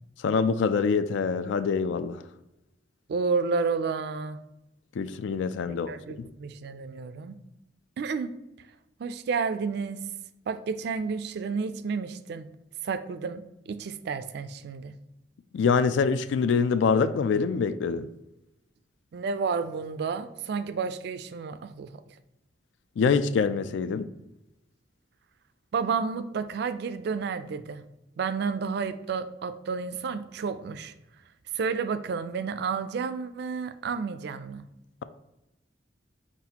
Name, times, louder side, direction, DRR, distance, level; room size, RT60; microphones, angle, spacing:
voice 1, 0.2-2.2 5.0-6.3 15.5-18.1 23.0-24.1, left 5 dB, 75° left, 0.3 m, -25 dB
voice 2, 3.1-4.4 5.9-7.4 8.0-8.3 9.0-10.0 10.5-12.5 12.8-14.9 19.1-22.0 25.7-27.8 28.2-30.9 31.5-34.6, right 5 dB, 60° right, 0.3 m, -31 dB
4.5 x 4.1 x 2.8 m
head